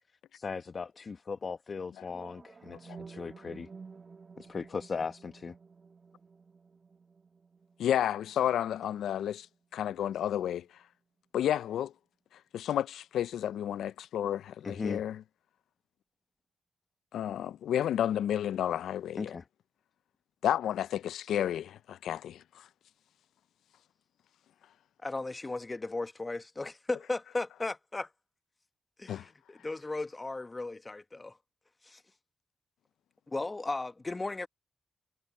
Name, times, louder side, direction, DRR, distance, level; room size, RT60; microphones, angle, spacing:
voice 1, 0.3-3.7 4.4-5.5 14.6-15.0 19.2-19.5, left 5 dB, 55° left, 1.2 m, -38 dB
sound 1, 2.0-10.1, right 5 dB, 50° right, 2.2 m, -52 dB
voice 2, 7.8-9.5 9.7-10.7 11.3-11.9 12.5-15.2 17.1-19.3 20.4-22.6 29.1-29.2, left 10 dB, 80° left, 0.6 m, -31 dB
voice 3, 25.0-28.1 29.0-31.4 31.8-32.0 33.3-34.5, left 2 dB, 30° left, 1.5 m, -36 dB
supercardioid pair, 45°, 0 cm